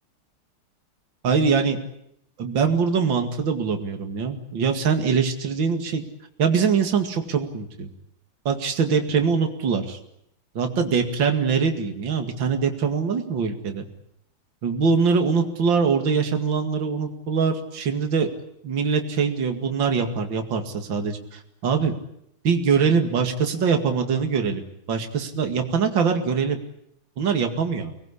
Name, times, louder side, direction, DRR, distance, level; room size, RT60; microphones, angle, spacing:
voice 1, 1.2-1.8 2.4-6.0 6.4-7.9 8.4-10.0 10.5-13.9 14.6-18.3 18.6-21.9 22.4-24.6 24.9-26.6 27.2-27.9, right 5 dB, 60° right, 5 dB, 2.9 m, -23 dB
24.5 x 20.0 x 9.9 m, 0.75 s
omnidirectional pair, 2.4 m